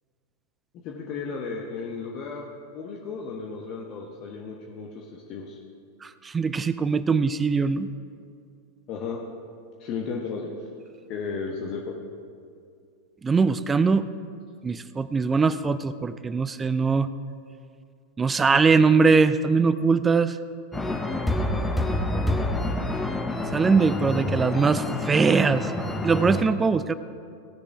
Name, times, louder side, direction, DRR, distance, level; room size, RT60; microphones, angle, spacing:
voice 1, 0.8-2.5 2.7-5.6 8.9-9.2 9.8-10.5 11.1-11.9, left 5 dB, 40° left, -1 dB, 1.0 m, -34 dB
voice 2, 6.0-7.9 13.2-14.0 14.6-17.1 18.2-20.4 23.5-25.7 26.0-26.9, right 4 dB, 15° right, 14 dB, 0.4 m, -21 dB
sound 1, 20.7-26.4, left 1 dB, 10° left, 0.8 m, -27 dB
17.5 x 6.7 x 4.7 m, 2.3 s
figure-of-eight pair, 90°, 0 cm